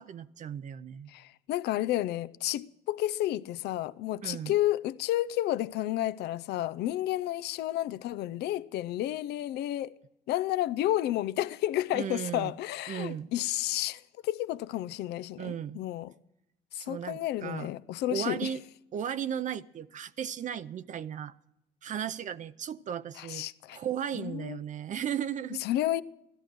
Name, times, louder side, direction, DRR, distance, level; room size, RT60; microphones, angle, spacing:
voice 1, 0.0-1.1 4.2-4.6 11.9-12.5 12.9-13.3 15.4-15.8 16.8-17.7 18.1-18.6 18.9-21.3 21.8-23.5 23.7-25.6, right 9 dB, 45° right, 0.6 m, -35 dB
voice 2, 1.1-9.9 10.3-16.1 16.7-18.5 23.2-23.8 24.1-24.6 25.6-26.0, left 14 dB, 75° left, 0.6 m, -31 dB
16.5 x 13.5 x 6.3 m
cardioid pair, 110°, 17 cm